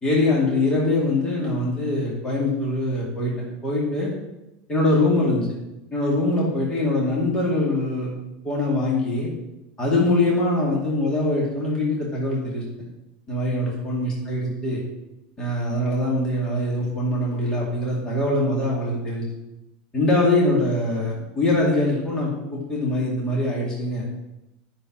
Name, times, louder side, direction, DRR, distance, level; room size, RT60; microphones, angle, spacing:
voice 1, 0.0-4.1 4.7-5.5 5.9-8.1 8.4-9.3 9.8-12.6 13.3-14.8 15.4-19.3 19.9-24.0, left 2 dB, 15° left, -5 dB, 2.4 m, -23 dB
9.1 x 6.7 x 8.8 m, 0.96 s
supercardioid pair, 170°, 4 cm